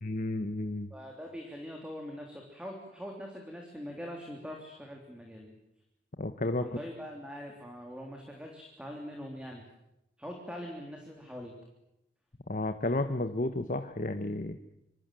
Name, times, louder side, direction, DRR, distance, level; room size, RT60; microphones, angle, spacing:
voice 1, 0.0-0.9 6.2-6.7 12.5-14.6, left 2 dB, 45° left, 9 dB, 1.2 m, -32 dB
voice 2, 0.9-5.5 6.6-9.7 10.2-11.6, equal, 5° right, 1 dB, 3.5 m, -43 dB
26.0 x 25.5 x 7.7 m, 0.85 s
head